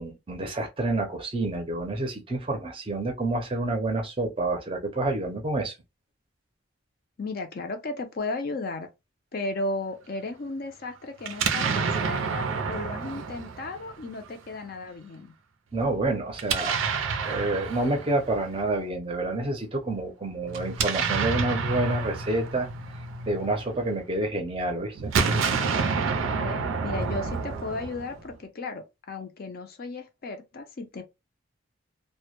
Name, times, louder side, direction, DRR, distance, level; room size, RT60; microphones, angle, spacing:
voice 1, 0.0-5.7 15.7-22.7 23.3-25.1, right 2 dB, 25° right, 0.5 m, -28 dB
voice 2, 7.2-8.9 9.3-15.3 26.3-31.0, left 2 dB, 50° left, 0.4 m, -35 dB
Explosion, 11.2-14.3 16.3-18.6 20.5-23.9 25.0-28.3, right 5 dB, 80° right, 0.4 m, -29 dB
2.1 x 2.0 x 2.8 m
head